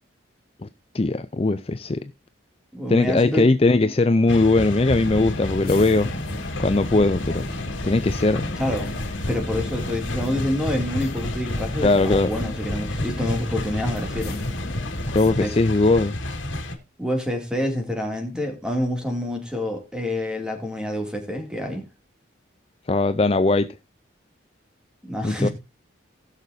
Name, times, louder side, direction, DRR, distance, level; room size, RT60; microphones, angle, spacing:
voice 1, 0.9-2.1 2.9-6.1 6.6-7.4 7.8-8.4 11.8-12.3 15.1-16.2 18.3-18.4 22.9-23.7 25.2-25.5, left 2 dB, 30° left, 0.4 m, -20 dB
voice 2, 2.7-3.5 8.6-8.9 9.3-14.4 15.3-15.6 17.0-21.9 25.1-25.5, left 1 dB, 5° right, 2.5 m, -27 dB
sound 1, 4.3-16.8, left 1 dB, 80° left, 2.5 m, -31 dB
sound 2, 4.9-15.3, left 1 dB, 50° left, 1.8 m, -34 dB
19.5 x 6.6 x 2.7 m
head